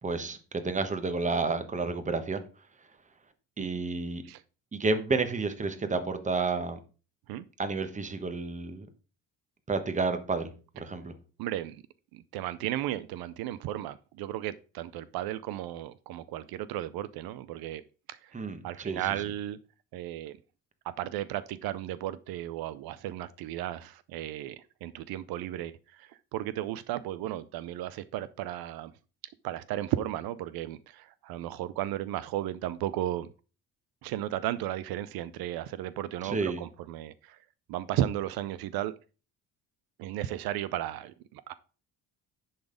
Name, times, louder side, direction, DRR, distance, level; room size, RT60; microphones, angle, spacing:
voice 1, 0.0-2.4 3.6-4.2 4.7-6.8 7.6-8.8 9.7-10.5 10.8-11.1 18.3-19.2 36.2-36.6, right 3 dB, 20° right, 1.1 m, -30 dB
voice 2, 11.4-11.8 12.1-17.8 18.1-18.3 18.6-19.6 19.9-20.4 20.8-28.9 29.4-33.3 34.0-37.4 37.7-38.9 40.0-41.5, right 13 dB, 75° right, 0.6 m, -34 dB
10.5 x 4.1 x 5.0 m
cardioid pair, 125°, 37 cm